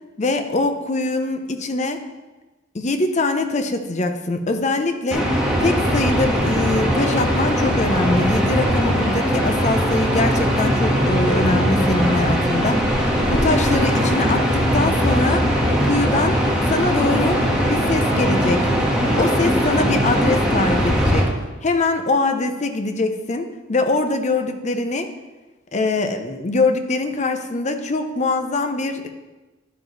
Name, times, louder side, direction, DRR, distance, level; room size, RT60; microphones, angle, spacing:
voice 1, 0.2-2.0 2.7-5.3 5.6-12.9 13.3-15.5 15.8-16.4 16.7-17.4 17.7-18.6 19.2-21.3 21.6-25.1 25.7-29.1, left 2 dB, 40° left, 7 dB, 0.7 m, -23 dB
sound 1, 5.1-21.2, equal, 5° right, 1.6 m, -20 dB
11.0 x 4.9 x 3.9 m, 1.1 s
head